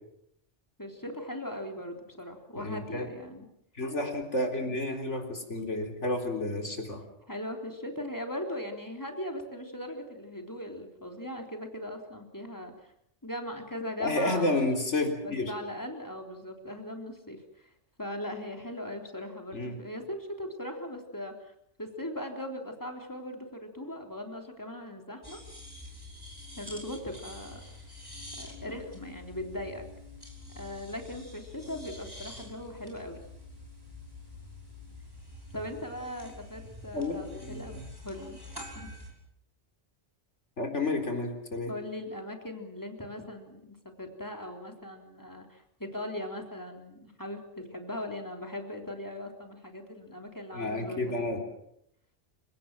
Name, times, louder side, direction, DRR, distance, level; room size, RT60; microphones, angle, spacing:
voice 1, 0.8-3.5 6.4-6.7 7.3-12.9 13.2-14.7 15.2-17.7 18.0-21.5 21.8-25.4 26.6-27.6 28.4-29.8 30.6-33.2 35.5-38.4 38.7-39.0 41.7-51.4, left 1 dB, 15° left, 3 dB, 3.7 m, -39 dB
voice 2, 2.6-3.1 3.7-7.0 14.0-15.5 19.5-19.8 36.9-37.1 37.5-37.8 40.6-41.7 50.5-51.4, left 2 dB, 80° left, 4 dB, 4.2 m, -30 dB
sound 1, 25.2-39.1, left 2 dB, 20° right, 5.8 m, -46 dB
29.5 x 17.5 x 7.6 m, 0.76 s
omnidirectional pair, 1.2 m